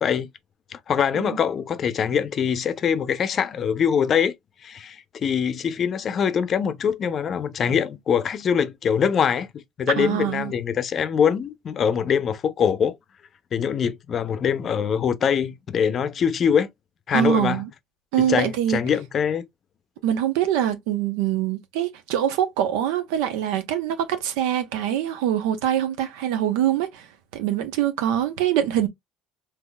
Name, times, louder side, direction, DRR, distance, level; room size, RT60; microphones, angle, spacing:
voice 1, 0.7-4.3 4.6-12.9 13.5-16.7 17.1-17.6 18.2-19.5, left 7 dB, 45° left, 0.5 m, -23 dB
voice 2, 10.0-10.5 17.1-17.7 18.1-18.8 20.0-27.1 27.3-28.9, right 10 dB, 85° right, 0.7 m, -24 dB
3.8 x 2.9 x 2.3 m
supercardioid pair, 105°, 0 cm